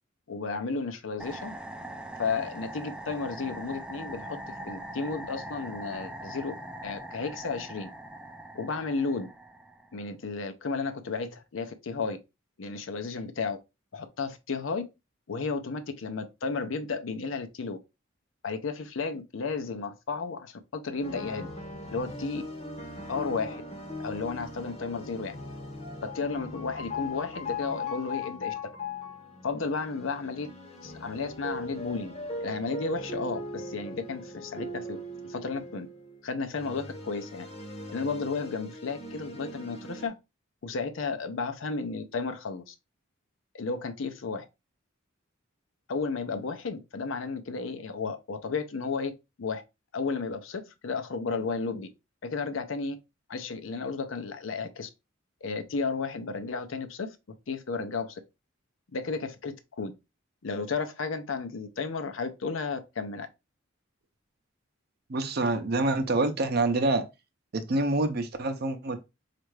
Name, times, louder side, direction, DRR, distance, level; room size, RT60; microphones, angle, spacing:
voice 1, 0.3-1.5 2.2-4.4 4.6-6.5 6.8-7.9 8.5-9.3 9.9-12.2 12.6-13.6 13.9-14.8 15.3-17.8 18.4-21.5 21.9-22.4 23.1-23.6 24.0-25.4 26.0-28.5 29.4-30.5 30.8-32.1 32.4-35.0 35.2-35.9 36.2-37.5 37.9-40.1 40.6-42.7 43.5-44.5 45.9-49.1 49.4-49.6 49.9-51.9 52.2-53.0 53.3-54.9 55.4-57.2 57.5-58.2 58.9-59.9 60.4-63.3, left 4 dB, 75° left, 0.6 m, -33 dB
sound 1, 1.2-10.0, right 1 dB, 5° right, 0.3 m, -42 dB
sound 2, 21.0-40.1, left 2 dB, 30° left, 0.8 m, -40 dB
voice 2, 65.1-67.0 67.5-69.0, right 2 dB, 50° right, 0.6 m, -26 dB
4.4 x 2.5 x 3.1 m
head